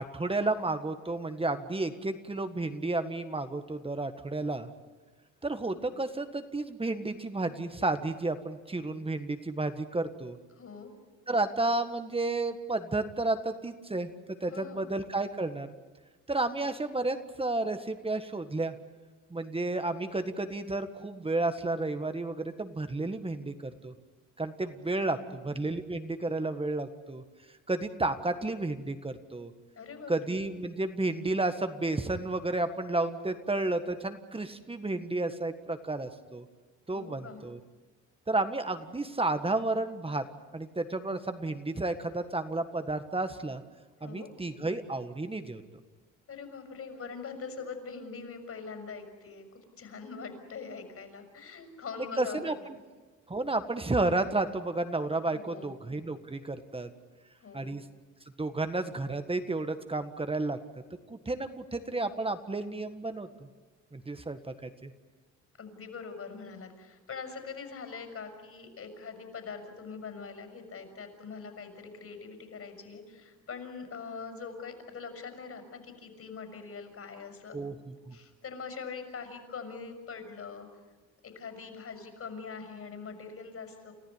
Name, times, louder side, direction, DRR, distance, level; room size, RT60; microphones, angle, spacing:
voice 1, 0.0-4.7 5.4-10.4 11.3-15.7 16.3-18.7 19.3-23.9 24.4-27.2 27.7-29.5 30.1-36.5 36.9-37.6 38.3-40.2 40.5-43.6 44.0-45.6 52.2-52.8 53.3-56.9 57.5-57.8 58.4-60.6 61.1-63.5 63.9-64.9 77.5-78.2, right 2 dB, 20° right, 9 dB, 1.6 m, -32 dB
voice 2, 10.6-10.9 14.5-14.9 25.0-25.4 29.8-30.1 36.9-37.4 44.0-44.3 46.3-49.4 49.8-52.5 55.3-55.7 57.4-57.8 65.6-77.6 78.1-80.7 81.2-83.9, left 5 dB, 50° left, 6 dB, 6.3 m, -43 dB
30.0 x 14.5 x 9.8 m, 1.3 s
cardioid pair, 90°, 30 cm